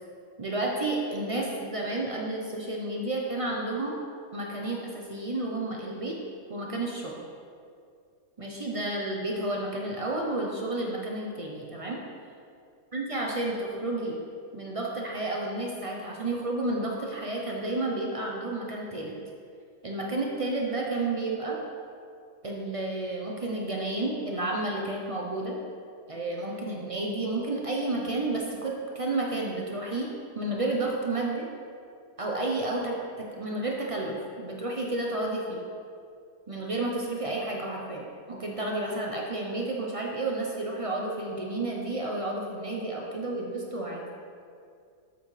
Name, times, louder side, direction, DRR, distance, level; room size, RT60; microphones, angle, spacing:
voice 1, 0.4-4.0 4.3-6.2 6.5-7.2 8.4-12.0 12.9-14.2 14.5-19.2 19.8-21.6 22.4-25.6 26.1-30.1 30.3-31.5 32.2-32.9 33.3-35.6 36.5-44.1, right 2 dB, 45° right, -2 dB, 0.4 m, -31 dB
8.1 x 7.5 x 3.3 m, 2.3 s
omnidirectional pair, 1.7 m